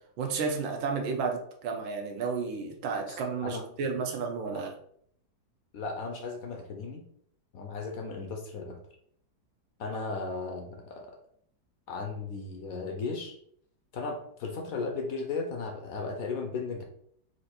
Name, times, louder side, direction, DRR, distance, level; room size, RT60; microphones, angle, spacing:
voice 1, 0.2-4.7, right 5 dB, 85° right, 3 dB, 1.5 m, -32 dB
voice 2, 5.7-7.0 7.5-8.8 9.8-11.1 11.9-13.4 13.9-16.8, left 4 dB, 65° left, 3 dB, 0.9 m, -36 dB
4.4 x 2.6 x 4.3 m, 0.66 s
omnidirectional pair, 2.1 m